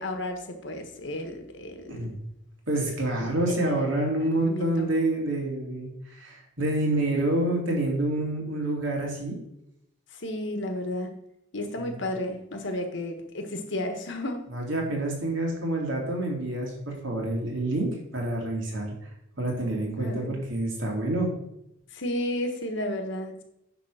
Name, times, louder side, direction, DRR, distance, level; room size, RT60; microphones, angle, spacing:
voice 1, 0.0-2.1 3.2-3.8 4.3-4.9 10.1-11.1 11.5-14.5 20.0-20.3 21.9-23.4, left 1 dB, 60° left, 5 dB, 1.3 m, -33 dB
voice 2, 2.7-9.4 11.8-11.9 14.5-18.9 19.4-21.3, right 1 dB, 65° right, -1 dB, 2.6 m, -28 dB
9.7 x 3.7 x 6.3 m, 0.80 s
head